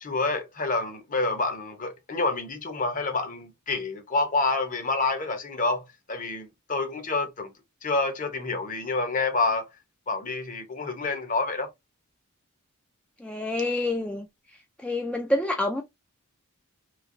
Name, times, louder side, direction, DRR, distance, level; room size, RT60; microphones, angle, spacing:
voice 1, 0.0-7.5 7.8-9.7 10.1-11.7, left 3 dB, 35° left, 0.8 m, -28 dB
voice 2, 13.2-14.3 14.8-15.8, left 1 dB, 5° left, 0.3 m, -27 dB
3.2 x 2.9 x 2.5 m
head